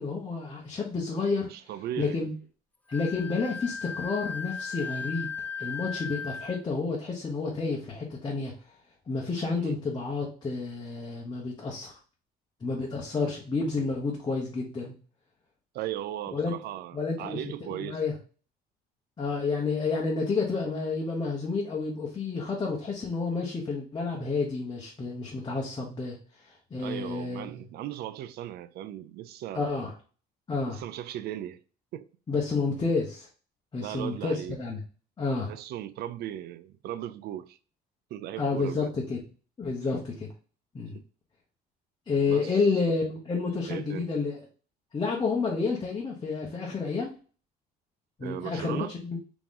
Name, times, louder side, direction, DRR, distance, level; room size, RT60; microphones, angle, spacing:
voice 1, 0.0-1.5 2.0-2.3 2.9-5.3 5.6-8.5 9.1-11.9 12.6-14.9 16.3-16.5 16.9-17.4 17.7-18.1 19.2-27.7 29.5-29.9 30.5-30.8 32.3-33.3 33.7-34.8 35.2-35.5 38.4-39.2 39.6-40.3 40.7-41.0 42.1-44.4 44.9-47.1 48.2-49.2, left 4 dB, 25° left, 0.9 m, -30 dB
voice 2, 1.5-2.2 9.6-9.8 15.7-18.0 26.8-29.9 30.7-31.6 31.9-32.1 33.8-34.6 35.5-37.6 38.1-38.9 40.9-41.0 42.3-42.8 43.7-44.1 48.2-48.9, right 12 dB, 70° right, 0.4 m, -37 dB
Wind instrument woodwind instrument, 2.9-6.6, left 5 dB, 10° left, 0.4 m, -36 dB
3.7 x 3.0 x 3.7 m
cardioid pair, 110°, 17 cm